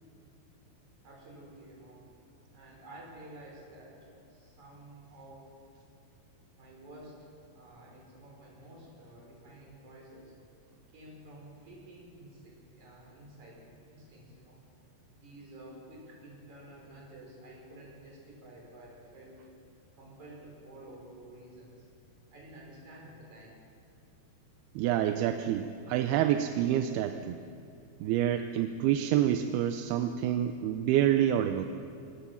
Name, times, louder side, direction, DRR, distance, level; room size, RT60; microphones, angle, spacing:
voice 1, 1.0-2.0 2.5-4.0 4.3-5.5 6.5-10.3 10.9-13.6 13.9-14.6 15.1-19.4 20.0-21.9 22.3-23.6, right 1 dB, 50° right, -3 dB, 7.0 m, -51 dB
voice 2, 24.8-27.4 28.0-31.7, right 11 dB, 85° right, 7 dB, 2.7 m, -27 dB
24.5 x 19.0 x 7.1 m, 2.5 s
omnidirectional pair, 4.4 m